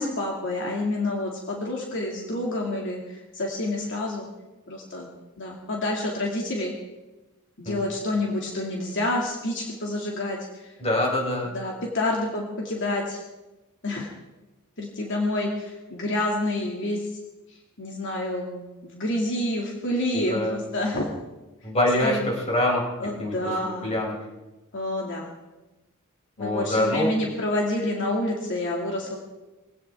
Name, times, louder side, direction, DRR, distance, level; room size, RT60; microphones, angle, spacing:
voice 1, 0.0-4.3 4.7-5.1 5.4-6.7 7.6-10.7 11.4-13.2 13.8-14.1 14.8-17.1 17.8-21.1 22.0-22.3 23.0-23.8 24.7-25.3 26.4-29.2, left 1 dB, 60° left, -1 dB, 2.4 m, -28 dB
voice 2, 10.8-11.5 20.1-20.6 21.6-22.9 23.2-23.4 23.6-24.2 26.4-27.1, left 1 dB, 30° left, -1 dB, 4.4 m, -25 dB
22.0 x 17.0 x 3.6 m, 1.1 s
head